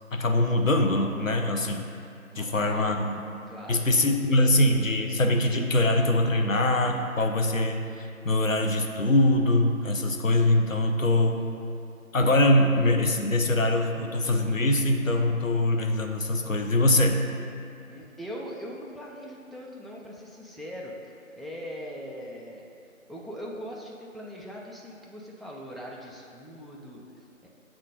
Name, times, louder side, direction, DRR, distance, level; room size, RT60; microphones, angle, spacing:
voice 1, 0.1-1.8 2.4-3.1 3.7-11.4 12.1-17.2, left 1 dB, 70° left, 4 dB, 0.7 m, -23 dB
voice 2, 2.3-3.0 3.5-3.9 17.9-20.9 21.4-22.7 23.1-27.5, equal, ahead, -4 dB, 0.4 m, -41 dB
7.1 x 3.7 x 4.9 m, 2.4 s
figure-of-eight pair, 170°, 41 cm